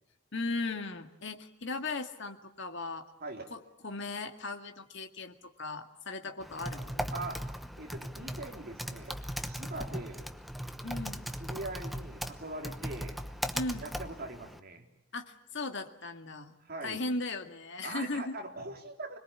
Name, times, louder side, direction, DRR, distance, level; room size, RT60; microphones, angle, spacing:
voice 1, 0.3-3.1 3.5-7.1 10.8-11.3 13.5-13.9 15.1-16.6 16.8-18.4, left 3 dB, 60° left, 5 dB, 2.1 m, -37 dB
voice 2, 3.2-3.5 7.1-7.4 7.8-10.3 11.4-13.2 13.8-14.9 16.6-17.0 17.8-19.2, right 2 dB, 45° right, 2 dB, 3.7 m, -42 dB
Typing, 6.4-14.6, equal, ahead, 0.9 m, -39 dB
25.5 x 22.0 x 8.7 m, 0.78 s
head